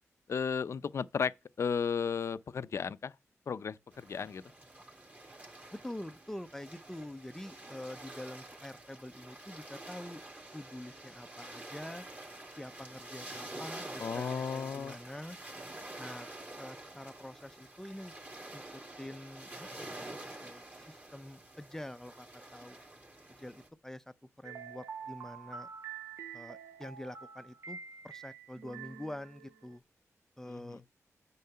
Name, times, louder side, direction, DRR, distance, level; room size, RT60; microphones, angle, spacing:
voice 1, 0.3-3.1 3.5-4.4 14.0-15.0 30.4-30.8, left 6 dB, 55° left, 0.5 m, -34 dB
sound 1, 3.9-23.7, right 1 dB, 30° right, 2.7 m, -48 dB
voice 2, 5.7-10.2 10.5-12.1 12.5-15.4 16.0-16.3 16.6-18.2 18.5-22.8 23.3-25.7 26.3-29.8 30.4-30.8, left 1 dB, 10° left, 0.6 m, -46 dB
sound 2, 24.4-29.8, right 6 dB, 60° right, 1.2 m, -47 dB
9.4 x 3.9 x 5.6 m
wide cardioid pair, 115°, 5 cm